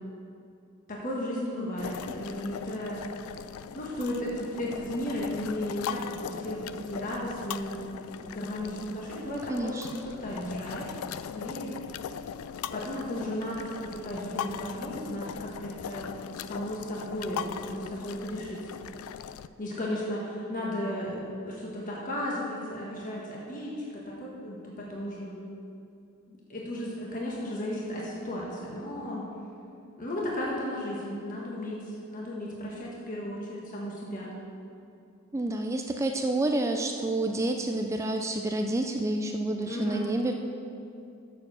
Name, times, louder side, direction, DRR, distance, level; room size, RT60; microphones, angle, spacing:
voice 1, 0.9-3.0 3.7-10.9 11.2-11.7 12.7-18.7 19.6-25.4 26.3-29.2 30.0-34.3 39.7-40.1, left 1 dB, 40° left, -4 dB, 1.3 m, -35 dB
sound 1, 1.8-19.5, left 8 dB, 90° left, 0.3 m, -40 dB
voice 2, 9.5-10.0 35.3-40.3, right 2 dB, 15° right, 4 dB, 0.3 m, -29 dB
7.2 x 6.6 x 6.3 m, 2.6 s
head